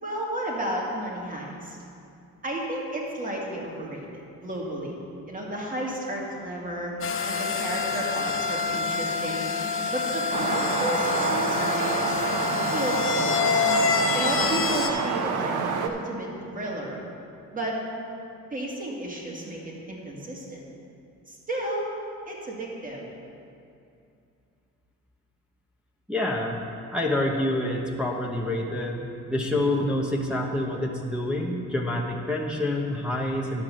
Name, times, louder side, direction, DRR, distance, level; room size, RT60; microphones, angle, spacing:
voice 1, 0.0-1.8 2.4-4.9 5.3-6.9 7.2-9.5 9.9-12.2 12.7-13.6 14.1-17.0 17.5-17.8 18.5-20.6 21.3-21.9 22.3-23.0, right 1 dB, 25° right, -2 dB, 2.2 m, -32 dB
sound 1, 7.0-14.9, left 5 dB, 45° left, 0.7 m, -27 dB
sound 2, 10.3-15.9, right 5 dB, 80° right, 0.8 m, -28 dB
voice 2, 26.1-26.6 26.9-33.6, left 1 dB, 5° right, -3 dB, 1.0 m, -27 dB
10.5 x 4.8 x 7.6 m, 2.6 s
cardioid pair, 90°, 30 cm